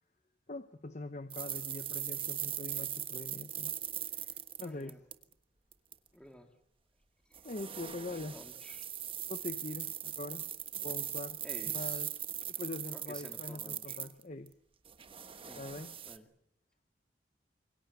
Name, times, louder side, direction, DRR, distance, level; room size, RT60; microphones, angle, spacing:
voice 1, 0.5-3.8 4.1-5.0 7.4-8.4 9.3-10.5 10.8-11.4 11.7-14.5 15.6-15.9, left 2 dB, 40° left, 11 dB, 0.9 m, -43 dB
sound 1, 1.3-5.3 5.7-5.9 7.3-14.5 14.9-16.2, right 10 dB, 30° right, 1.3 m, -40 dB
voice 2, 4.6-5.0 6.1-6.5 7.3-7.4 8.1-8.9 11.4-12.1 12.9-14.0 15.4-16.3, equal, 5° left, 5 dB, 2.3 m, -53 dB
27.0 x 24.0 x 7.1 m, 0.76 s
head